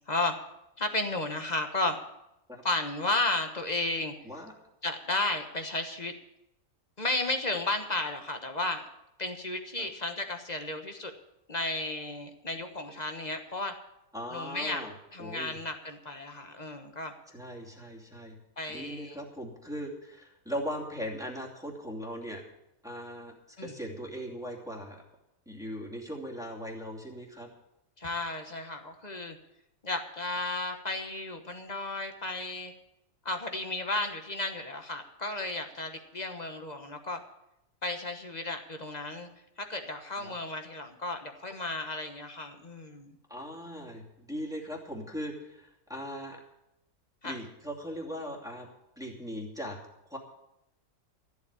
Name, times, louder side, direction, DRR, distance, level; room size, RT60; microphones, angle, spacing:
voice 1, 0.8-2.0 2.6-4.1 4.8-6.1 7.0-8.8 9.2-11.1 11.5-13.7 14.3-14.8 15.1-17.1 18.6-19.2 23.6-23.7 28.0-29.4 29.8-32.7 33.2-37.2 37.8-39.3 39.7-43.1 47.2-47.4, left 2 dB, 30° left, 6 dB, 1.2 m, -33 dB
voice 2, 14.1-14.9 15.2-15.6 17.3-18.4 18.7-22.4 22.8-25.0 25.5-27.5 40.2-40.3 43.3-46.4 47.2-48.7 49.0-49.8 50.1-50.2, equal, ahead, -1 dB, 2.7 m, -39 dB
14.0 x 8.2 x 8.4 m, 0.86 s
omnidirectional pair, 1.6 m